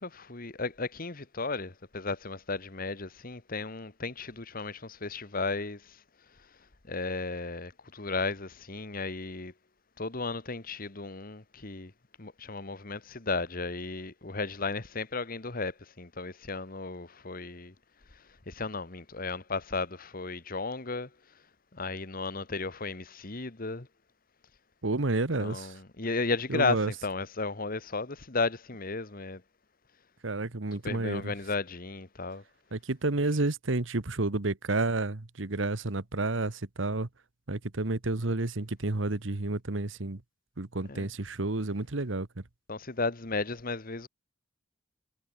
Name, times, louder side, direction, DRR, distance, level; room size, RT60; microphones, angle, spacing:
voice 1, 0.0-6.0 6.8-9.5 10.0-11.9 12.2-17.7 18.5-21.1 21.7-23.9 25.4-29.4 30.8-32.4 40.9-41.1 42.7-44.1, left 3 dB, 45° left, 1.6 m, -34 dB
voice 2, 24.8-25.7 26.5-26.9 30.2-31.3 32.7-37.1 37.5-40.2 40.6-42.3, right 2 dB, 75° right, 1.3 m, -30 dB
head